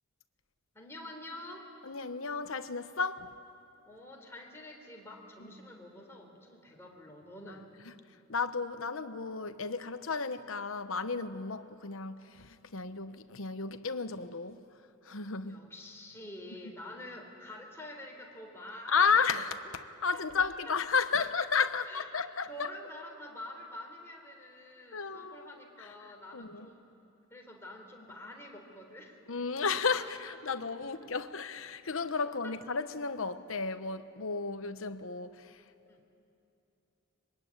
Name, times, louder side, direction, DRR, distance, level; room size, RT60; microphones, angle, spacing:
voice 1, 0.7-1.7 3.8-7.7 15.1-15.2 15.4-19.1 19.3-19.4 20.4-20.5 21.1-21.2 21.9-22.0 22.5-26.9 27.3-29.2 32.4-32.5 35.9-36.0, left 1 dB, 10° left, 3.7 m, -47 dB
voice 2, 1.8-3.3 5.4-5.5 7.9-8.0 8.3-14.6 15.0-15.6 18.9-22.7 24.9-25.5 25.8-25.9 26.3-26.7 29.3-35.7, left 5 dB, 65° left, 1.1 m, -33 dB
25.0 x 22.5 x 9.7 m
head